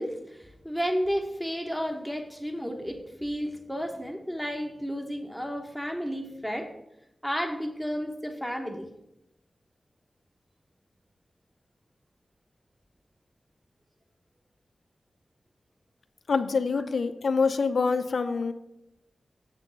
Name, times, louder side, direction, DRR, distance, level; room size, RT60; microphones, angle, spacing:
voice 1, 0.0-6.7 7.2-8.9 17.8-17.9, equal, ahead, 3 dB, 0.9 m, -32 dB
voice 2, 16.3-18.5, left 4 dB, 80° left, 9 dB, 0.6 m, -25 dB
8.1 x 6.9 x 3.8 m, 0.84 s
wide cardioid pair, 90°, 0 cm